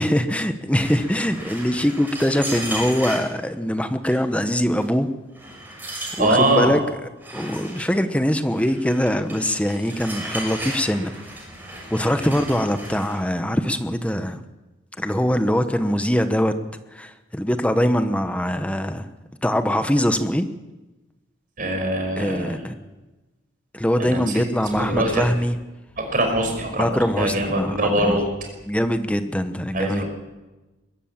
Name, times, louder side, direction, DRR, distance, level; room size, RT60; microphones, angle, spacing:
voice 1, 0.0-5.1 6.2-6.8 7.3-11.1 11.9-14.4 15.0-16.5 16.9-19.1 19.4-20.5 22.2-22.7 23.7-25.6 26.8-28.2 28.7-30.0, equal, 5° left, 9 dB, 1.0 m, -22 dB
sound 1, 0.8-3.3 4.1-4.4 4.8-4.9 5.3-6.6 7.2-7.9 8.6-13.2, right 1 dB, 10° right, 6.5 m, -35 dB
voice 2, 6.2-6.7 21.6-22.6 24.0-24.4 24.7-25.2 26.0-26.9 27.1-28.3 29.7-30.1, right 1 dB, 45° right, 4 dB, 5.4 m, -22 dB
22.0 x 13.0 x 8.8 m, 1.1 s
head